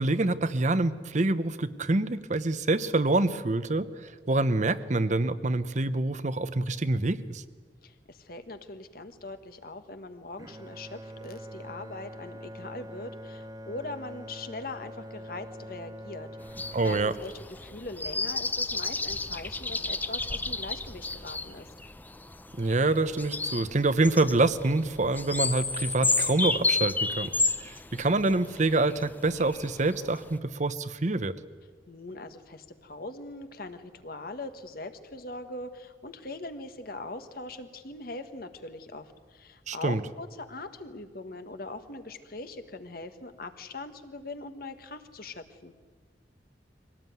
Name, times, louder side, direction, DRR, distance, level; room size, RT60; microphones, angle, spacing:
voice 1, 0.0-7.4 16.7-17.1 22.6-27.3 27.9-31.3 39.7-40.0, right 2 dB, 45° right, 13 dB, 0.8 m, -26 dB
voice 2, 7.8-21.7 31.9-45.7, left 2 dB, 55° left, 9 dB, 1.4 m, -41 dB
Bowed string instrument, 10.4-18.6, equal, 20° right, 1.0 m, -45 dB
sound 1, 16.4-30.4, left 3 dB, 10° left, 0.6 m, -32 dB
23.5 x 18.0 x 9.4 m, 1.5 s
head